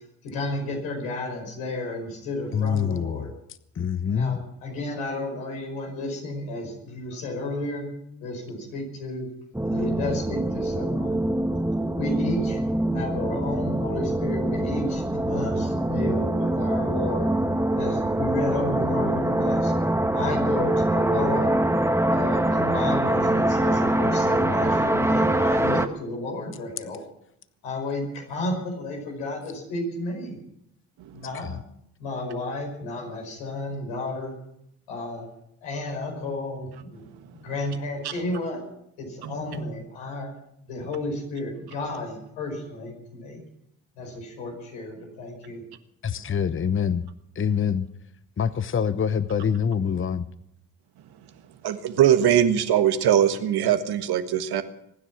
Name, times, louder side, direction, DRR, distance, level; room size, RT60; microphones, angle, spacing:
voice 1, 0.2-3.3 4.1-7.9 8.2-9.3 9.7-11.3 12.0-12.6 12.9-17.3 17.8-19.7 20.1-21.6 22.1-27.0 27.6-30.4 31.1-31.5 32.0-34.3 34.9-35.3 35.6-37.1 37.3-38.7 39.0-40.3 40.7-43.4 44.0-45.6, left 2 dB, 90° left, 0 dB, 5.3 m, -32 dB
voice 2, 2.5-3.3 3.8-4.4 7.1-7.2 31.3-31.5 46.0-47.0 47.3-47.9 48.4-50.3, left 7 dB, 30° left, 14 dB, 0.9 m, -25 dB
sound 1, 9.5-25.9, right 1 dB, 5° right, 1.4 m, -24 dB
voice 3, 51.6-54.6, right 10 dB, 70° right, 9 dB, 1.6 m, -21 dB
23.5 x 10.0 x 6.1 m, 0.75 s
hypercardioid pair, 50°, 40 cm